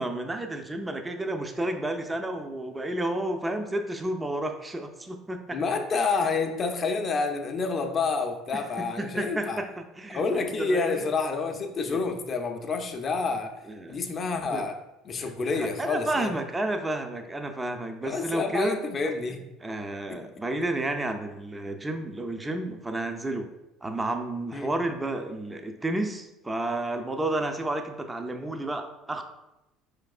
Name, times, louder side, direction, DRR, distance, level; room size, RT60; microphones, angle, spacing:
voice 1, 0.0-5.6 8.5-11.1 11.9-12.0 13.7-14.0 14.5-14.7 15.2-18.8 19.6-23.5 23.8-29.2, right 1 dB, 15° right, 6 dB, 0.5 m, -31 dB
voice 2, 5.5-9.6 10.1-13.5 13.9-14.8 15.0-16.3 18.0-19.4 20.1-20.2 20.6-20.7 24.5-24.7, left 4 dB, 40° left, 4 dB, 0.5 m, -28 dB
4.6 x 3.3 x 2.3 m, 0.94 s
hypercardioid pair, 65°, 0 cm